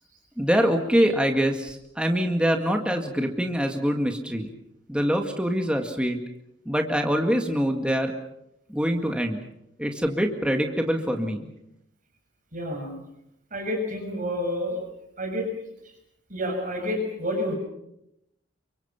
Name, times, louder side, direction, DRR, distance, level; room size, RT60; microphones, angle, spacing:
voice 1, 0.4-4.5 4.9-6.2 6.7-8.1 8.7-9.4 9.8-11.4, equal, 5° right, 3 dB, 1.9 m, -24 dB
voice 2, 12.5-12.9 13.5-14.8 15.2-15.5 15.8-15.9 16.3-17.5, left 1 dB, 45° right, 2 dB, 6.7 m, -29 dB
29.0 x 24.5 x 5.9 m, 0.80 s
head